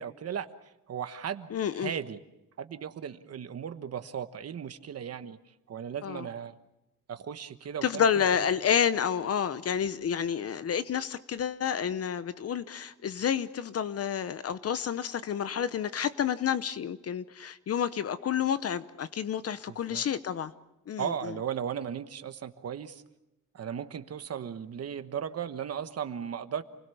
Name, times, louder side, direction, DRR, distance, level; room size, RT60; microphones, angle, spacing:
voice 1, 0.0-2.2 2.6-6.6 7.1-8.5 19.7-20.0 21.0-23.0 23.5-26.6, right 8 dB, 55° right, 10 dB, 1.2 m, -37 dB
voice 2, 1.5-1.9 6.0-6.3 7.8-20.5 20.9-21.3, left 8 dB, 50° left, 14 dB, 0.9 m, -29 dB
28.5 x 20.5 x 7.0 m, 0.92 s
wide cardioid pair, 175°, 31 cm